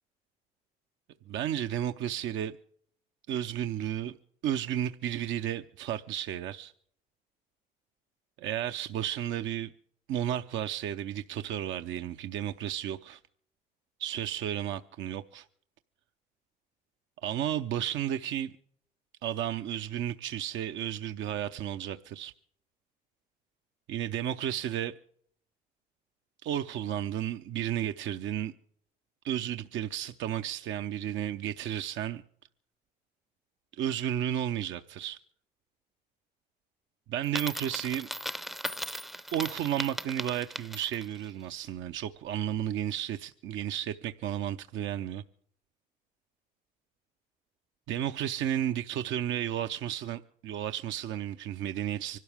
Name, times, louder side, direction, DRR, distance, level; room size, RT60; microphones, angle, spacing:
voice 1, 1.3-2.6 3.3-4.2 4.4-6.7 8.4-9.7 10.1-13.2 14.0-15.5 17.2-18.5 19.2-22.3 23.9-24.9 26.4-28.5 29.2-32.2 33.8-35.2 37.1-38.1 39.3-45.2 47.9-52.2, right 11 dB, 65° right, 0.7 m, -33 dB
Coin (dropping), 37.2-41.2, equal, ahead, 0.6 m, -38 dB
25.0 x 12.0 x 3.5 m
hypercardioid pair, 60°, 21 cm